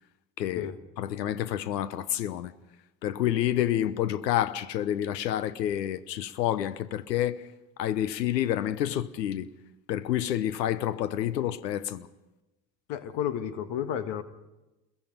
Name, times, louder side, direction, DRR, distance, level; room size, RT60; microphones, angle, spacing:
voice 1, 0.4-0.7 1.0-2.6 3.0-7.5 7.8-9.5 9.9-12.1, left 12 dB, 85° left, 1.0 m, -28 dB
voice 2, 12.9-14.2, left 9 dB, 60° left, 1.6 m, -31 dB
28.0 x 22.0 x 5.3 m
hypercardioid pair, 60°, 48 cm